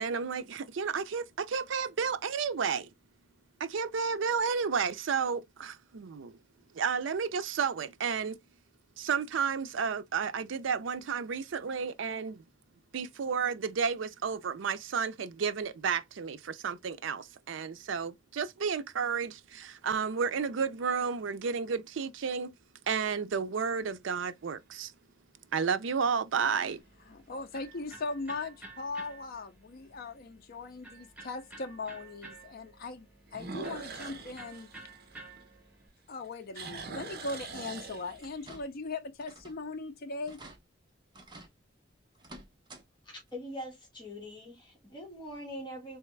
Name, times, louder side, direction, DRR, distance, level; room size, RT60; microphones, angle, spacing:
voice 1, 0.0-2.9 3.6-6.4 6.7-8.4 9.0-12.4 12.9-22.5 22.9-24.9 25.5-26.8, right 6 dB, 70° right, 0.5 m, -32 dB
sound 1, 19.6-20.3 21.0-21.1 26.3-26.8 27.2-27.3 27.9-28.0 28.2-28.3 29.9-30.0 33.3-35.8 36.1-38.5, right 3 dB, 55° right, 0.8 m, -43 dB
Electric guitar, 26.8-35.9, right 3 dB, 10° right, 1.2 m, -52 dB
voice 2, 27.1-34.7 36.1-40.4, left 3 dB, 50° left, 0.5 m, -39 dB
sound 2, 38.2-38.9 39.2-39.6 39.9-40.0 40.3-40.6 41.1-41.5 42.1-42.8 43.2-43.3 44.7-44.8 45.3-45.4, right 2 dB, 25° right, 0.9 m, -51 dB
voice 3, 43.3-46.0, equal, 25° left, 1.6 m, -42 dB
3.5 x 3.2 x 3.1 m
head